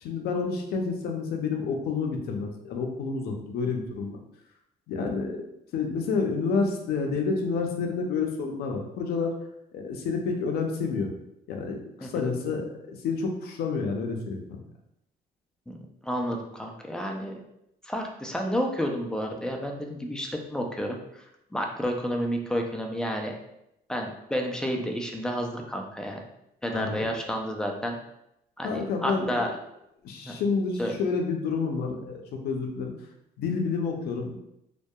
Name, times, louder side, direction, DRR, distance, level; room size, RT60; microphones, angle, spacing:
voice 1, 0.0-4.2 4.9-5.4 5.7-9.3 9.7-11.1 11.5-14.6 26.7-27.1 28.6-29.4 30.0-32.9 33.4-34.4, left 4 dB, 70° left, 3 dB, 0.5 m, -29 dB
voice 2, 16.0-17.4 17.8-21.2 21.5-23.3 23.9-26.2 26.6-28.0 28.6-29.5 30.3-30.4 30.8-30.9, equal, 5° left, 1 dB, 0.3 m, -30 dB
2.6 x 2.2 x 2.2 m, 0.82 s
cardioid pair, 110°, 17 cm